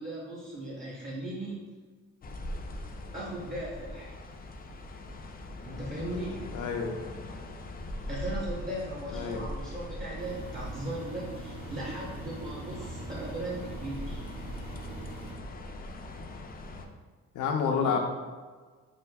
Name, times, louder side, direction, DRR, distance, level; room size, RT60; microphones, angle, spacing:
voice 1, 0.0-1.6 3.1-4.1 5.6-6.6 8.1-14.2 17.6-18.0, right 1 dB, 25° right, -4 dB, 0.9 m, -38 dB
sound 1, 2.2-16.9, left 1 dB, 30° left, 0.4 m, -41 dB
voice 2, 6.5-6.9 9.1-9.5 17.3-18.0, left 6 dB, 80° left, 3 dB, 0.6 m, -28 dB
Engine, 10.2-15.3, right 2 dB, 65° right, 1.4 m, -43 dB
6.4 x 2.5 x 2.3 m, 1.4 s
cardioid pair, 90°, 30 cm